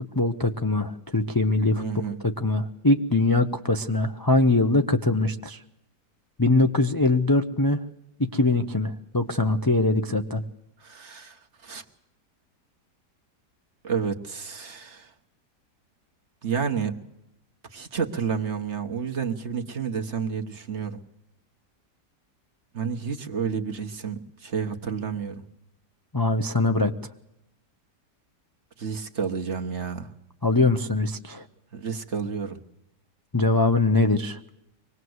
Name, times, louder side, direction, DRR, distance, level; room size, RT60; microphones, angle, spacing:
voice 1, 0.0-5.6 6.4-7.8 8.2-10.4 26.1-26.9 30.4-31.4 33.3-34.4, left 2 dB, 25° left, 6 dB, 0.4 m, -22 dB
voice 2, 1.8-2.2 10.8-11.8 13.8-15.1 16.4-16.9 17.7-21.0 22.7-25.4 28.8-30.1 31.7-32.6, right 6 dB, 45° right, 5 dB, 1.5 m, -30 dB
24.0 x 19.0 x 8.0 m, 0.84 s
omnidirectional pair, 1.8 m